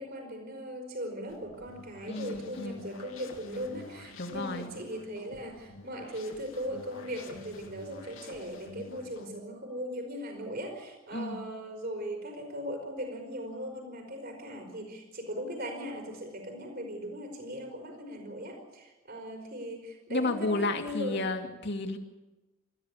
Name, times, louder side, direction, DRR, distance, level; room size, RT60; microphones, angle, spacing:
voice 1, 0.0-21.2, equal, 50° right, 3 dB, 5.2 m, -39 dB
sound 1, 1.3-9.3, left 2 dB, 70° left, 2.8 m, -50 dB
voice 2, 2.1-2.9 4.2-4.7 11.1-11.4 20.1-22.0, left 2 dB, 55° left, 4 dB, 2.5 m, -32 dB
28.5 x 14.0 x 8.6 m, 1.1 s
head